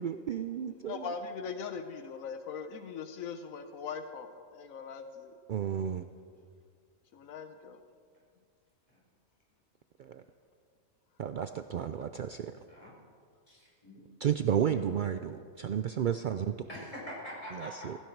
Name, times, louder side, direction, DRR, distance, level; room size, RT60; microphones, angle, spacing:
voice 1, 0.0-1.1 5.5-6.0 10.0-10.2 11.2-12.5 14.2-16.7 17.5-18.0, right 9 dB, 80° right, 9 dB, 0.4 m, -32 dB
voice 2, 0.8-5.3 7.1-7.8, left 6 dB, 80° left, 8 dB, 1.2 m, -40 dB
voice 3, 13.5-14.0 16.7-17.9, equal, 25° left, -5 dB, 4.9 m, -44 dB
16.0 x 15.5 x 4.6 m, 2.2 s
omnidirectional pair, 1.4 m